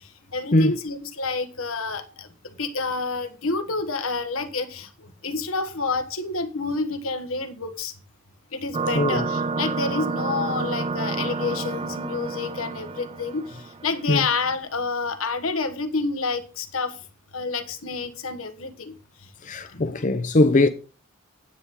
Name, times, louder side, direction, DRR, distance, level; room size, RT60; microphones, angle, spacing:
voice 1, 0.3-4.9 5.2-7.9 8.5-13.6 13.8-16.9 17.3-19.0 19.7-20.0 20.6-20.7, left 4 dB, 85° left, 1.4 m, -29 dB
sound 1, 8.7-14.0, right 4 dB, 25° right, 0.5 m, -29 dB
voice 2, 8.9-9.2 14.1-14.3 19.4-20.7, left 2 dB, 40° left, 0.7 m, -20 dB
9.2 x 8.2 x 4.2 m
head